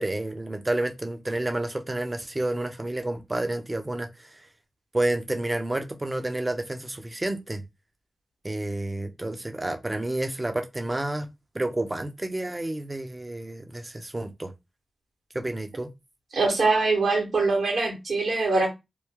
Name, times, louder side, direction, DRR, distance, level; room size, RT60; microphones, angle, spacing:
voice 1, 0.0-4.1 4.9-7.6 8.4-11.3 11.5-14.5 15.3-15.9, right 1 dB, 25° right, 0.8 m, -30 dB
voice 2, 16.3-18.7, right 3 dB, 75° right, 1.7 m, -23 dB
3.2 x 2.2 x 3.6 m
cardioid pair, 45°, 0 cm